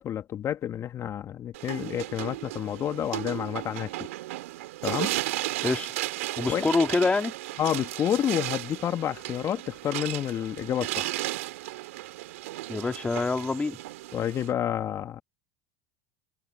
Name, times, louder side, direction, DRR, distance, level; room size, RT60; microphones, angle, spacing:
voice 1, 0.0-3.9 4.8-5.2 6.5-6.7 7.6-11.2 14.1-15.2, left 10 dB, 40° left, 2.4 m, -29 dB
sound 1, 1.5-14.5, right 18 dB, 75° right, 3.6 m, -35 dB
voice 2, 6.4-7.3 12.7-13.8, left 3 dB, 15° left, 2.7 m, -25 dB
hypercardioid pair, 80°, 8 cm